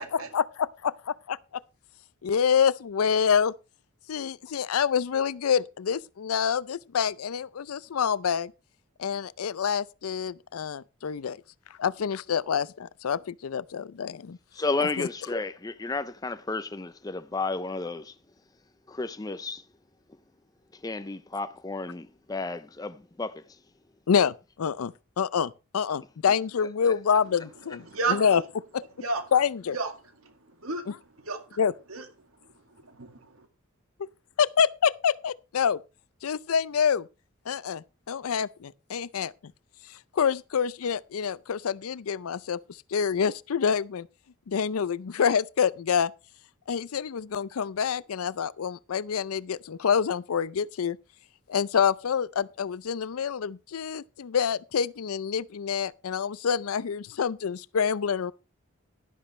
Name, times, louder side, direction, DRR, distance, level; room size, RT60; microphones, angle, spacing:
voice 1, 0.0-1.4 2.2-3.5 4.1-8.5 9.0-11.4 11.8-14.4 15.0-15.1 24.1-28.4 28.7-28.8 29.3-29.8 31.6-31.7 34.4-35.8 36.2-37.1 37.5-39.3 40.1-42.6 42.9-44.1 44.5-46.1 46.7-51.0 51.5-58.3, left 7 dB, 80° left, 0.5 m, -27 dB
voice 2, 14.5-18.1 18.9-19.6 20.7-23.6 26.6-26.9, left 3 dB, 15° left, 0.4 m, -32 dB
voice 3, 27.9-28.4 29.0-29.2 29.7-29.9 30.2-31.6 31.9-32.1 32.7-33.2, right 3 dB, 75° right, 2.0 m, -33 dB
12.0 x 11.0 x 3.2 m
head